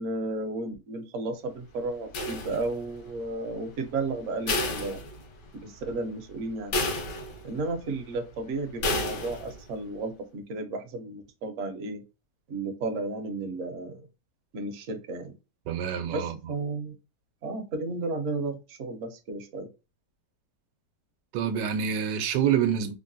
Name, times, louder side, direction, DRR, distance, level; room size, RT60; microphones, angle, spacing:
voice 1, 0.0-5.0 5.6-6.8 7.4-12.0 12.5-14.0 14.5-15.3 16.1-17.0 17.4-19.7, right 3 dB, 60° right, 0.9 m, -33 dB
sound 1, 2.1-3.0 4.5-5.6 6.0-6.1 6.7-7.6 8.8-9.6, left 2 dB, 80° left, 1.5 m, -31 dB
voice 2, 15.7-16.3 21.3-22.9, right 8 dB, 85° right, 1.2 m, -26 dB
3.6 x 2.1 x 2.6 m
omnidirectional pair, 1.8 m